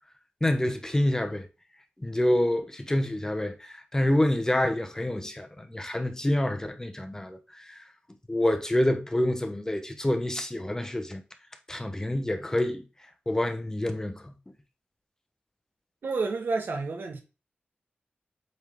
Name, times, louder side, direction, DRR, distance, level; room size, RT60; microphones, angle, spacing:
voice 1, 0.4-1.4 2.0-7.8 8.3-11.2 11.7-12.8 13.3-14.3, left 1 dB, 15° left, 0.9 m, -27 dB
voice 2, 16.0-17.2, right 4 dB, 75° right, 1.4 m, -30 dB
8.0 x 3.8 x 3.5 m
wide cardioid pair, 90°, 4 cm